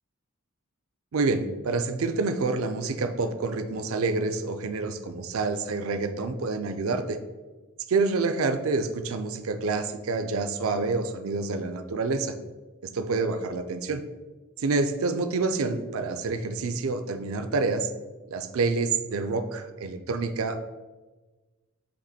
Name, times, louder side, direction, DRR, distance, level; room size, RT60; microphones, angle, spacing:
voice 1, 1.1-7.2 7.9-12.4 12.8-14.0 14.6-17.9 18.3-20.6, right 3 dB, 70° right, 8 dB, 0.5 m, -27 dB
7.8 x 3.0 x 4.2 m, 1.2 s
head